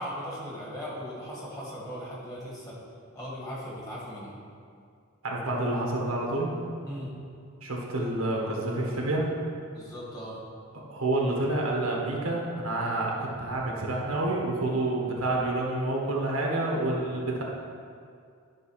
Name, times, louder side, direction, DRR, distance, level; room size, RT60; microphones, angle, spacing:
voice 1, 0.0-2.8 3.1-4.4 6.8-7.1 9.7-10.4, equal, 15° left, -6 dB, 2.0 m, -38 dB
voice 2, 5.2-6.5 7.6-9.3 10.7-17.4, right 2 dB, 90° right, -2 dB, 1.5 m, -28 dB
10.5 x 3.8 x 5.8 m, 2.3 s
head